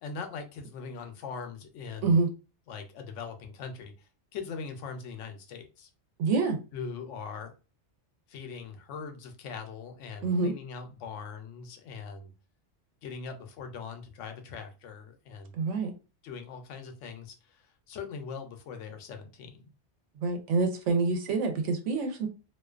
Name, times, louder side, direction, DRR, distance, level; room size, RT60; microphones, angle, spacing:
voice 1, 0.0-2.2 2.7-5.9 6.7-7.5 8.3-12.3 13.0-15.5 16.2-19.6, left 5 dB, 85° left, 0.9 m, -41 dB
voice 2, 6.2-6.6 10.2-10.5 15.5-15.9 20.2-22.3, right 4 dB, 85° right, 0.9 m, -26 dB
2.4 x 2.2 x 2.3 m
omnidirectional pair, 1.2 m